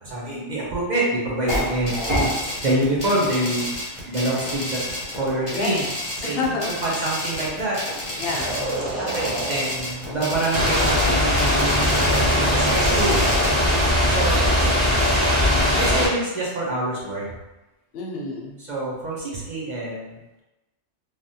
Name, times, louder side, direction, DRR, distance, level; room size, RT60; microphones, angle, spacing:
voice 1, 0.0-2.3 2.6-5.9 6.2-7.8 9.0-13.2 14.1-14.6 15.8-17.2 18.6-20.4, right 1 dB, 45° right, -5 dB, 0.7 m, -26 dB
sound 1, 1.5-13.5, left 1 dB, 30° left, 0.8 m, -30 dB
voice 2, 5.5-5.9 6.2-6.7 8.2-8.6 15.7-16.1 17.9-18.6, left 3 dB, 65° left, 0 dB, 0.7 m, -28 dB
sound 2, 8.1-10.0 12.2-14.9, right 2 dB, 75° right, 1.2 m, -31 dB
sound 3, 10.5-16.1, left 1 dB, 25° right, 1.4 m, -20 dB
3.3 x 2.3 x 2.7 m, 1.0 s
omnidirectional pair, 1.2 m